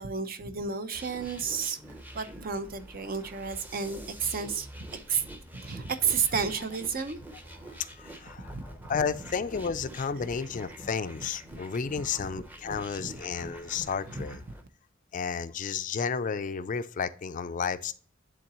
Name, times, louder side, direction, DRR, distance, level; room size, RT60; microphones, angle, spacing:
voice 1, 0.0-5.3 5.5-7.7 8.5-8.6 8.9-9.0 12.2-12.3 12.7-13.1 14.1-14.3, right 6 dB, 50° right, 0.6 m, -32 dB
sound 1, 0.9-14.6, right 1 dB, 10° right, 0.7 m, -46 dB
voice 2, 7.8-8.5 8.9-14.4 15.1-17.9, left 6 dB, 40° left, 0.4 m, -32 dB
10.0 x 3.8 x 3.0 m
head